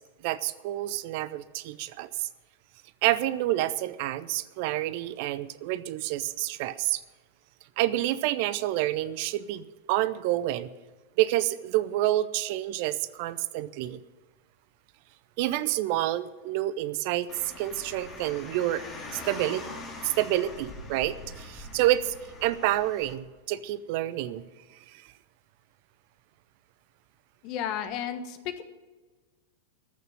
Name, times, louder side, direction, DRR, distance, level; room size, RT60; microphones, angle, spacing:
voice 1, 0.2-2.3 3.0-7.0 7.8-10.7 11.2-14.0 15.4-17.3 17.6-18.8 19.1-19.6 20.0-22.1 22.4-24.4 24.9-25.0, right 14 dB, 45° right, 16 dB, 0.6 m, -28 dB
Car, 17.3-23.1, left 2 dB, 25° left, 2.8 m, -43 dB
voice 2, 27.4-28.6, left 9 dB, 40° left, 9 dB, 1.3 m, -33 dB
14.5 x 6.8 x 9.9 m, 1.3 s
figure-of-eight pair, 90°, 0 cm